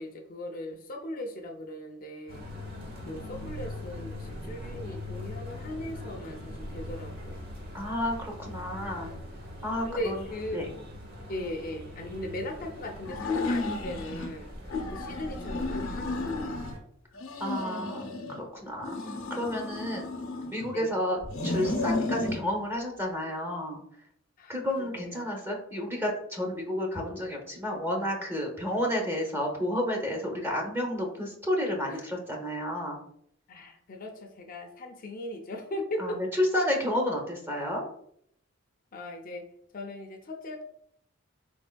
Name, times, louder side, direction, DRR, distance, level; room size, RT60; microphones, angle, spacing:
voice 1, 0.0-2.5 3.1-7.5 9.8-10.6 11.3-14.5 14.9-16.6 19.9-20.1 20.7-20.9 24.4-25.4 31.9-32.1 33.5-36.2 38.9-39.4 39.7-40.6, left 1 dB, 45° left, 3 dB, 0.5 m, -38 dB
sound 1, 2.3-16.8, left 1 dB, 50° right, 0.8 m, -41 dB
voice 2, 7.7-9.1 9.6-10.1 10.5-10.7 17.4-19.0 19.3-20.0 20.5-23.8 24.5-33.0 36.0-36.1 36.5-37.8, left 1 dB, 10° right, -1 dB, 0.7 m, -31 dB
sound 2, 13.0-14.3 14.7-16.8 17.1-18.4 18.8-20.7 21.2-22.4, left 2 dB, 90° left, 0.6 m, -33 dB
4.0 x 3.4 x 2.2 m, 0.69 s
head